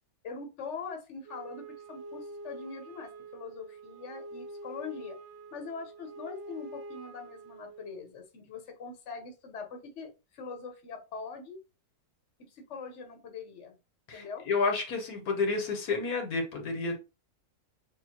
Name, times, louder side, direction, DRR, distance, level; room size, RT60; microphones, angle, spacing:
voice 1, 0.2-5.2 5.5-11.6 12.5-13.8 14.1-14.4, left 5 dB, 50° left, 1.3 m, -42 dB
Wind instrument woodwind instrument, 1.2-8.0, right 2 dB, 65° right, 0.6 m, -46 dB
voice 2, 14.1-17.0, left 4 dB, 75° left, 1.5 m, -30 dB
6.6 x 2.7 x 2.9 m
omnidirectional pair, 1.6 m